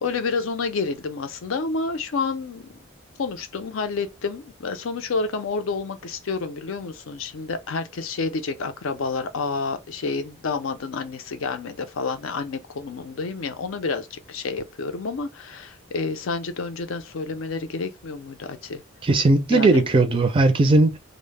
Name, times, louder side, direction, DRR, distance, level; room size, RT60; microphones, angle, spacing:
voice 1, 0.0-2.7 3.2-18.8 19.5-19.8, left 4 dB, 75° left, 0.5 m, -29 dB
voice 2, 19.0-21.0, right 2 dB, 25° right, 0.4 m, -18 dB
2.1 x 2.0 x 3.2 m
head